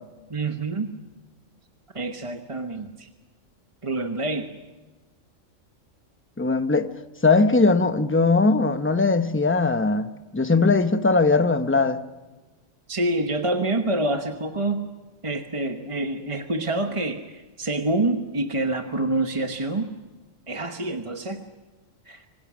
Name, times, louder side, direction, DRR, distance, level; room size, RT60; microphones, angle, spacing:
voice 1, 0.3-0.9 1.9-3.1 3.8-4.5 12.9-14.9 15.2-19.9 20.5-21.4 22.1-22.3, right 2 dB, 25° right, 1.1 m, -27 dB
voice 2, 6.4-6.9 7.2-12.0, left 3 dB, 10° left, 0.8 m, -20 dB
26.5 x 25.5 x 6.2 m
omnidirectional pair, 1.3 m